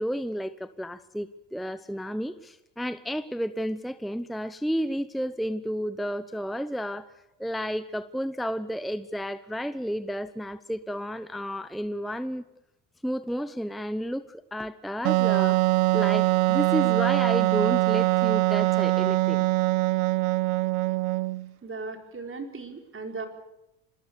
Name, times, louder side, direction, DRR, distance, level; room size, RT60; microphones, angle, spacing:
voice 1, 0.0-7.1 7.4-12.4 13.0-15.6 15.9-19.4, equal, ahead, 13 dB, 0.9 m, -31 dB
Wind instrument woodwind instrument, 15.0-21.5, right 21 dB, 85° right, 0.8 m, -23 dB
voice 2, 21.6-23.3, right 4 dB, 30° right, 5 dB, 4.6 m, -37 dB
25.5 x 20.5 x 6.8 m, 0.91 s
hypercardioid pair, 70°, 40 cm